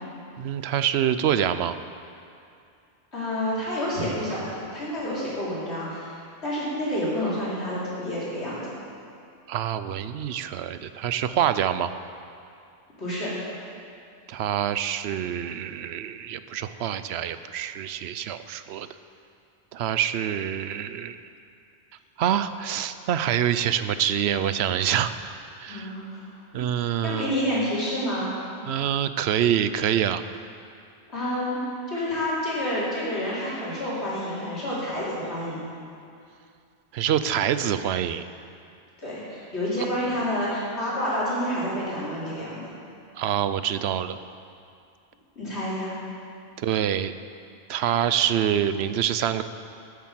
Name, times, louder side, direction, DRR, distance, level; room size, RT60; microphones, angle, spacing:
voice 1, 0.4-1.7 9.5-11.9 14.3-18.9 19.7-21.2 22.2-25.1 25.6-25.9 26.5-27.3 28.7-30.2 36.9-38.2 43.2-44.2 46.6-47.1 47.7-49.4, right 9 dB, 75° right, 12 dB, 0.8 m, -26 dB
voice 2, 3.1-8.7 13.0-13.3 25.7-26.3 27.0-28.3 31.1-31.6 31.9-35.6 39.0-42.6 45.4-45.9, left 1 dB, 80° left, -9 dB, 4.3 m, -29 dB
12.0 x 8.5 x 7.5 m, 2.5 s
omnidirectional pair, 1.1 m